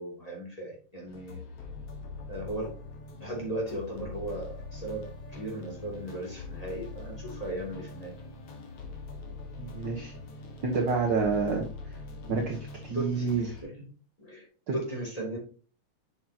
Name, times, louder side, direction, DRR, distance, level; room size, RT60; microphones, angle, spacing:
voice 1, 0.0-1.4 2.3-2.7 3.2-8.1 12.9-13.3 13.6-13.7 14.2-14.4 14.7-15.4, right 1 dB, 10° left, -3 dB, 2.9 m, -36 dB
sound 1, 1.1-13.6, left 3 dB, 60° left, 2.5 m, -43 dB
voice 2, 9.6-10.1 10.6-11.6 12.2-13.5 14.7-14.8, right 4 dB, 50° right, 0 dB, 1.5 m, -28 dB
7.7 x 6.6 x 2.9 m, 0.39 s
omnidirectional pair, 3.3 m